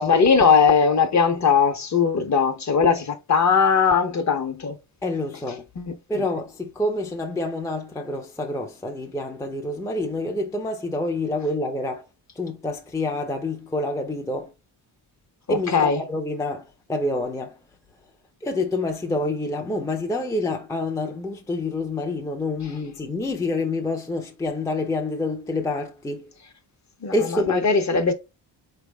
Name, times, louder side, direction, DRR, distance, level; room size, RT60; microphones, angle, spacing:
voice 1, 0.0-4.7 5.8-6.2 15.5-16.0 27.0-28.1, left 5 dB, 35° left, 0.9 m, -20 dB
voice 2, 5.0-5.6 6.1-12.0 12.4-14.5 15.5-17.5 18.4-26.3 27.1-27.7, left 2 dB, 5° left, 0.6 m, -27 dB
4.5 x 3.4 x 3.4 m
wide cardioid pair, 145°, 46 cm